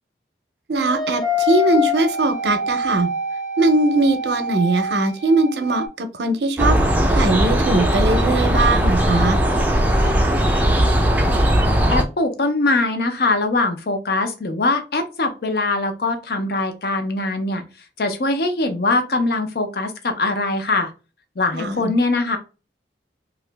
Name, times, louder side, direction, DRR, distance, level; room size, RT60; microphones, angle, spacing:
voice 1, 0.7-3.1 3.6-6.8 7.1-9.4 21.5-21.9, right 2 dB, 75° right, 0.6 m, -20 dB
sound 1, 0.8-5.9, left 3 dB, 25° left, 0.8 m, -25 dB
sound 2, 6.6-12.0, right 1 dB, 10° right, 0.4 m, -18 dB
voice 2, 11.9-17.6 18.0-20.9 21.4-22.4, left 2 dB, 60° left, 0.6 m, -22 dB
2.9 x 2.4 x 3.3 m
head